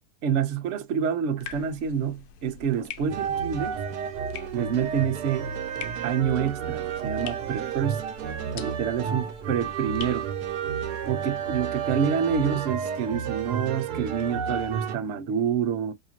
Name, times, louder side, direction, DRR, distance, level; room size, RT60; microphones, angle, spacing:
voice 1, 0.2-3.8 4.5-5.5 6.0-8.0 8.5-10.3 11.1-15.9, right 7 dB, 60° right, 0.8 m, -27 dB
sound 1, 1.4-11.3, left 8 dB, 75° left, 1.1 m, -45 dB
sound 2, 3.1-15.0, right 7 dB, 85° right, 1.2 m, -31 dB
3.6 x 2.8 x 2.9 m
omnidirectional pair, 1.7 m